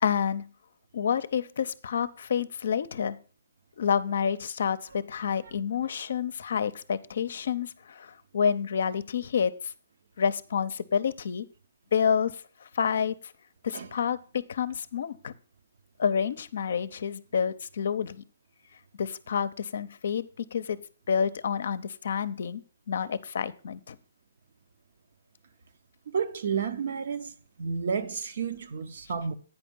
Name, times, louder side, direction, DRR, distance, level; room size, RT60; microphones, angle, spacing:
voice 1, 0.0-0.5 0.9-3.2 3.8-9.5 10.2-11.5 11.9-12.3 12.7-13.1 13.6-14.2 14.5-15.3 16.0-18.2 19.0-20.8 21.1-22.6 22.9-24.0, left 7 dB, 65° left, 0.6 m, -28 dB
voice 2, 26.1-27.3 27.6-29.3, right 6 dB, 60° right, 0.8 m, -31 dB
9.0 x 5.0 x 5.4 m
hypercardioid pair, 140°, 0 cm